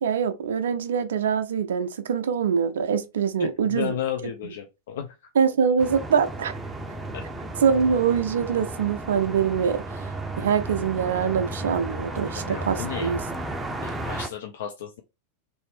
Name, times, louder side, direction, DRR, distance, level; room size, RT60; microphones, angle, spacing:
voice 1, 0.0-3.9 5.4-6.5 7.6-10.1 10.4-13.2, right 7 dB, 60° right, 0.5 m, -24 dB
voice 2, 3.4-5.1 7.1-7.2 12.3-13.2 13.8-15.0, left 9 dB, 60° left, 0.5 m, -33 dB
sound 1, 5.8-14.3, right 1 dB, 15° right, 0.5 m, -34 dB
3.3 x 2.7 x 3.1 m
figure-of-eight pair, 90°, 0 cm